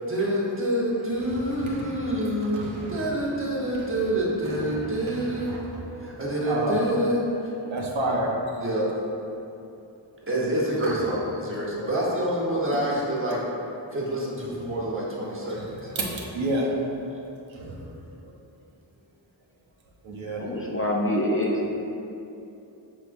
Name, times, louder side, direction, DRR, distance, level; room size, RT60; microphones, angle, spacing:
voice 1, 0.0-5.5 6.0-7.5 8.6-8.9 10.2-13.4 13.9-15.8, right 1 dB, 25° right, -5 dB, 1.0 m, -27 dB
voice 2, 1.7-2.1 2.4-3.0 4.5-4.9 5.5-5.8 6.5-6.8 7.7-8.3 10.8-11.0 15.5-15.6 15.9-16.7 17.5-17.9 20.0-20.4, right 1 dB, 80° right, -3 dB, 0.7 m, -30 dB
voice 3, 20.4-21.7, left 1 dB, 30° left, -2 dB, 0.4 m, -25 dB
4.7 x 3.6 x 2.6 m, 2.9 s
cardioid pair, 45°, 46 cm